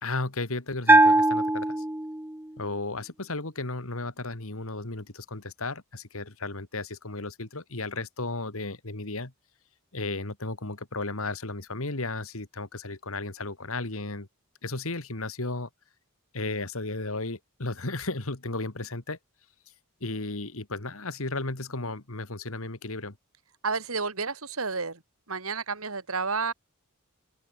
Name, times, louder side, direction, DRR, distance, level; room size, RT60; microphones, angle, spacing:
voice 1, 0.0-1.8 2.6-9.3 9.9-14.3 14.6-15.7 16.3-19.2 20.0-23.2, left 2 dB, 65° left, 2.3 m, -34 dB
Bell, 0.9-2.5, right 2 dB, 10° right, 0.7 m, -20 dB
voice 2, 23.6-25.0 25.3-26.5, right 4 dB, 65° right, 2.6 m, -30 dB
open air
head